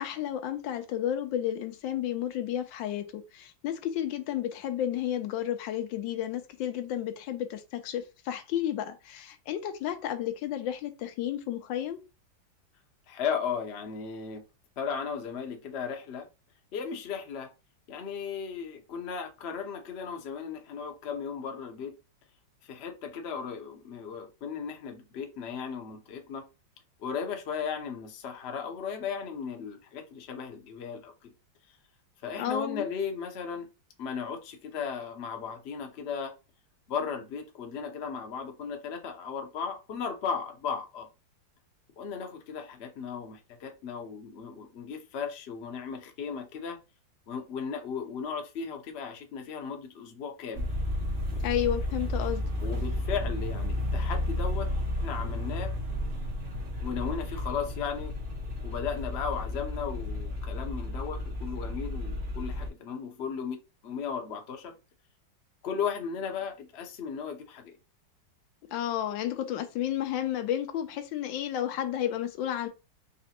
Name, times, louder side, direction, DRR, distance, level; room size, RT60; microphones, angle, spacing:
voice 1, 0.0-12.0 32.4-32.9 51.4-52.4 68.7-72.7, left 11 dB, 80° left, 1.3 m, -32 dB
voice 2, 13.1-14.4 14.8-16.3 16.7-17.5 17.9-21.9 22.6-26.4 27.0-31.3 32.2-33.7 34.0-36.3 36.9-41.1 42.0-46.8 47.3-50.6 52.6-54.7 55.0-55.7 56.8-58.1 58.6-63.6 63.8-64.7 65.6-67.8, left 6 dB, 50° left, 0.8 m, -36 dB
sound 1, 50.5-62.7, left 1 dB, 45° right, 1.0 m, -32 dB
4.0 x 3.2 x 2.9 m
omnidirectional pair, 2.0 m